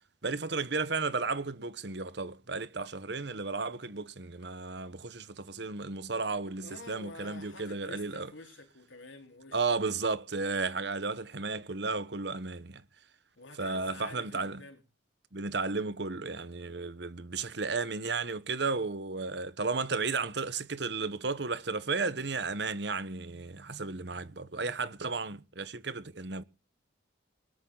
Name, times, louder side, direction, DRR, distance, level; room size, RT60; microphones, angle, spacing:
voice 1, 0.2-8.3 9.5-12.8 13.6-14.6 15.3-26.4, right 4 dB, 60° right, 1.1 m, -34 dB
voice 2, 6.6-9.9 13.4-14.8, left 3 dB, 80° left, 4.3 m, -49 dB
20.5 x 13.5 x 4.0 m
head